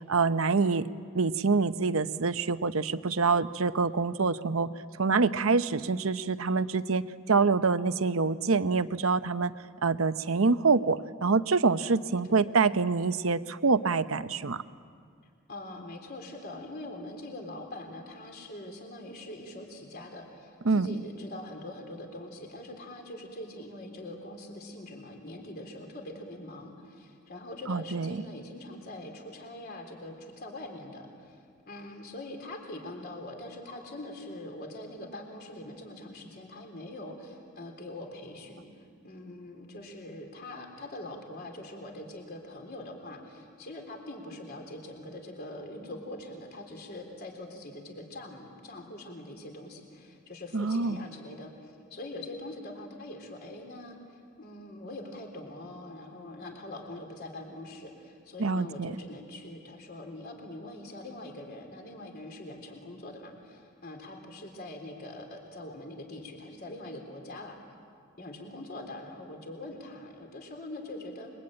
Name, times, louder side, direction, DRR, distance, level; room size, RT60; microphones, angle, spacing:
voice 1, 0.1-0.9 1.1-4.7 5.0-9.5 9.8-14.6 20.6-21.0 27.7-28.2 50.5-51.1 58.4-58.9, right 4 dB, 70° right, 12 dB, 0.8 m, -26 dB
voice 2, 15.5-38.7 39.0-67.6 68.2-71.3, left 1 dB, 45° left, 3 dB, 3.7 m, -43 dB
29.0 x 23.0 x 8.9 m, 2.2 s
head